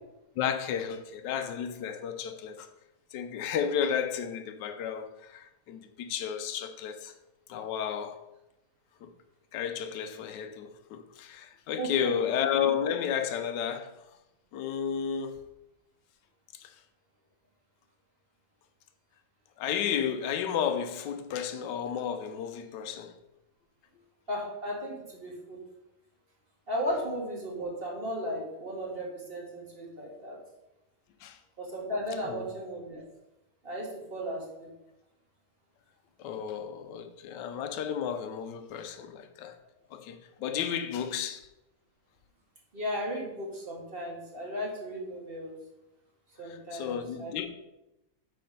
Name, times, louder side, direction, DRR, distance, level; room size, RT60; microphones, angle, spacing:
voice 1, 0.4-2.7 3.1-7.1 7.5-8.2 9.0-9.1 9.5-13.9 14.5-15.4 16.6-16.7 19.6-23.1 31.2-31.4 32.3-32.4 36.2-39.6 39.9-41.4 46.4-47.5, left 8 dB, 90° left, 1.3 m, -32 dB
voice 2, 11.8-12.1 24.3-25.6 26.7-30.4 31.6-33.0 33.6-34.7 40.4-40.6 42.7-45.6 46.4-47.5, equal, 35° right, 2.0 m, -35 dB
8.4 x 4.2 x 5.3 m
omnidirectional pair, 1.8 m